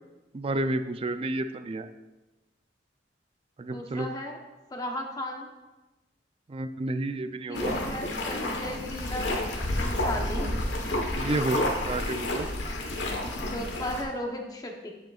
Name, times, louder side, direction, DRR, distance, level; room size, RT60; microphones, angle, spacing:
voice 1, 0.3-1.9 3.6-4.1 6.5-7.8 11.2-12.5, right 2 dB, 35° right, 10 dB, 0.4 m, -30 dB
voice 2, 3.7-4.4 4.7-5.5 7.5-10.5 13.5-14.9, left 1 dB, 20° left, 2 dB, 1.0 m, -36 dB
sound 1, 7.5-14.0, left 1 dB, 85° left, 1.2 m, -30 dB
8.9 x 8.1 x 2.4 m, 1.1 s
head